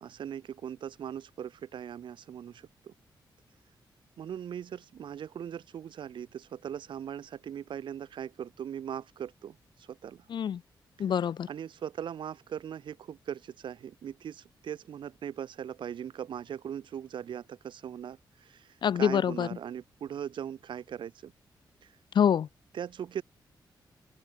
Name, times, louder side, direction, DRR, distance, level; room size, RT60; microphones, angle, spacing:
voice 1, 0.0-2.9 4.2-10.2 11.5-21.3 22.7-23.2, right 9 dB, 75° right, 2.3 m, -40 dB
voice 2, 10.3-10.6 11.0-11.5 18.8-19.5 22.1-22.5, left 8 dB, 65° left, 1.2 m, -25 dB
open air
wide cardioid pair, 125°, 8 cm